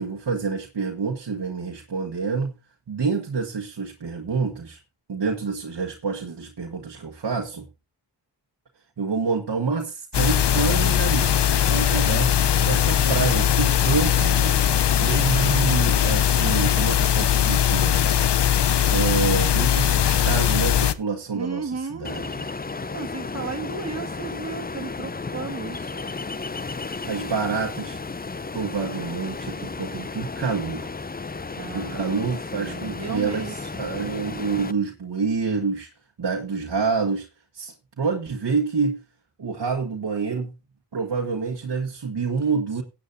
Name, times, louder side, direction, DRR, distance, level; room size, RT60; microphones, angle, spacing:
voice 1, 0.0-2.5 2.9-4.8 5.1-7.7 9.0-11.3 11.7-12.3 12.6-14.5 15.0-18.0 18.9-22.5 27.0-28.0 28.5-30.9 31.6-35.9 36.2-37.3 37.5-39.0 39.4-40.5 40.9-42.8, right 5 dB, 60° right, 1.6 m, -27 dB
sound 1, 10.1-20.9, left 10 dB, 65° left, 0.8 m, -20 dB
voice 2, 21.3-22.1 22.9-26.0 31.6-32.3 32.5-33.8, right 4 dB, 35° right, 2.0 m, -34 dB
Ocean, 22.0-34.7, left 4 dB, 20° left, 0.6 m, -34 dB
16.0 x 8.6 x 2.7 m
cardioid pair, 45°, 44 cm